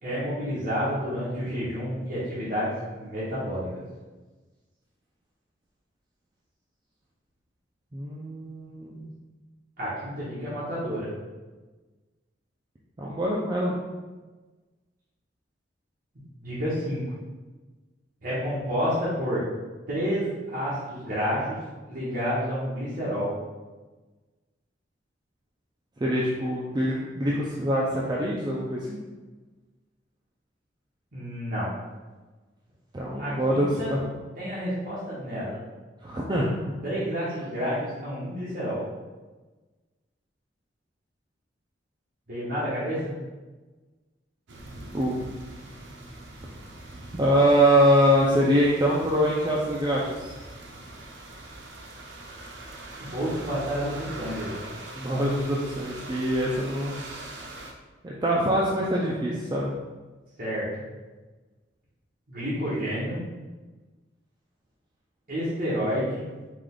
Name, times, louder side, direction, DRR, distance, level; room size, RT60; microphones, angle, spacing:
voice 1, 0.0-3.8 9.8-11.1 16.4-17.0 18.2-19.4 19.9-21.6 21.9-23.3 31.1-31.7 33.2-33.9 34.4-35.6 36.8-38.8 42.3-43.1 53.0-54.7 60.4-60.8 62.3-63.2 65.3-66.2, equal, 50° right, -11 dB, 1.2 m, -29 dB
voice 2, 7.9-9.1 13.0-13.7 26.0-29.0 32.9-34.0 36.0-36.5 44.9-45.2 47.2-50.3 54.9-57.0 58.0-59.7, equal, 25° right, -5 dB, 0.5 m, -24 dB
sound 1, 44.5-57.7, right 2 dB, 70° right, 0.6 m, -42 dB
4.9 x 2.3 x 3.8 m, 1.3 s
head